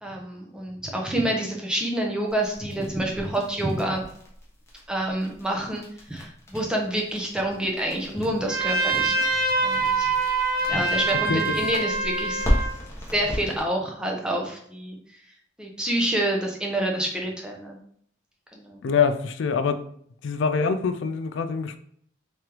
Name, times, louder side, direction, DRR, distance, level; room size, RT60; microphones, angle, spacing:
voice 1, 0.0-4.0 4.9-9.3 9.6-10.1 10.7-12.5 13.1-15.0 15.6-17.8 18.5-18.8, right 1 dB, 5° right, 0 dB, 0.6 m, -28 dB
sound 1, 2.3-13.6, equal, 15° left, 0.9 m, -34 dB
Trumpet, 8.5-12.7, right 3 dB, 50° right, 0.8 m, -25 dB
voice 2, 18.8-19.8 20.2-21.8, left 5 dB, 75° left, 9 dB, 0.4 m, -24 dB
3.5 x 3.2 x 3.0 m, 0.63 s
head